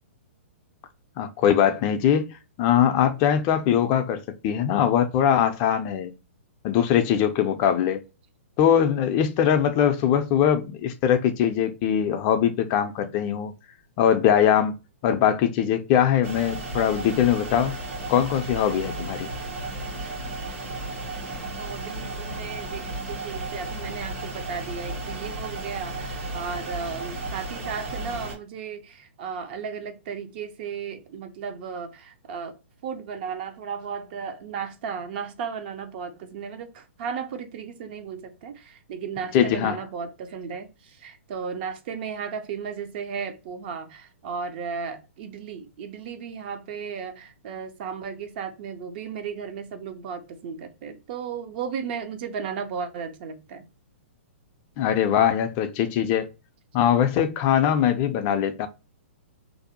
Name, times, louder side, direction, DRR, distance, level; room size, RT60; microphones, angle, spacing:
voice 1, 1.2-2.3 2.6-6.1 6.6-8.0 8.6-13.5 14.0-14.7 15.0-17.8 18.1-19.3 39.3-39.8 54.8-56.3 56.7-58.7, left 9 dB, 35° left, 0.4 m, -21 dB
sound 1, 16.2-28.4, right 2 dB, 80° right, 1.4 m, -34 dB
voice 2, 21.6-53.7, right 6 dB, 50° right, 0.5 m, -35 dB
2.5 x 2.0 x 2.8 m
hypercardioid pair, 135°, 7 cm